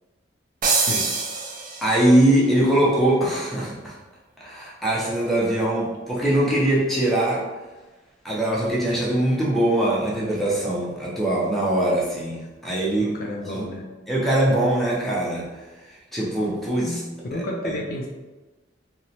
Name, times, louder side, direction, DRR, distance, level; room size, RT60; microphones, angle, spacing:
sound 1, 0.6-2.2, right 4 dB, 45° right, 0.4 m, -25 dB
voice 1, 0.7-1.1 13.0-13.9 16.8-18.1, left 1 dB, 50° left, 0 dB, 0.3 m, -31 dB
voice 2, 1.8-3.9 4.4-7.5 8.2-13.1 13.5-13.6 14.1-15.5 16.1-17.0, right 1 dB, ahead, -6 dB, 0.6 m, -22 dB
2.9 x 2.0 x 2.7 m, 1.2 s
head